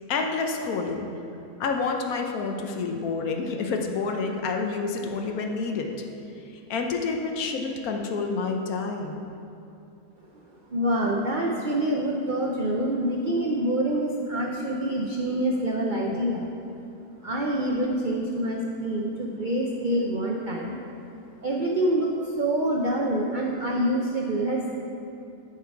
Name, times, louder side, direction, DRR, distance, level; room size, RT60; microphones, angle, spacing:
voice 1, 0.1-1.1 1.6-5.9 6.7-9.2, left 4 dB, 65° left, 3 dB, 1.1 m, -28 dB
voice 2, 10.7-16.5 17.2-20.8 21.4-24.8, right 1 dB, 70° right, -2 dB, 0.4 m, -26 dB
10.5 x 4.8 x 4.6 m, 2.9 s
omnidirectional pair, 1.7 m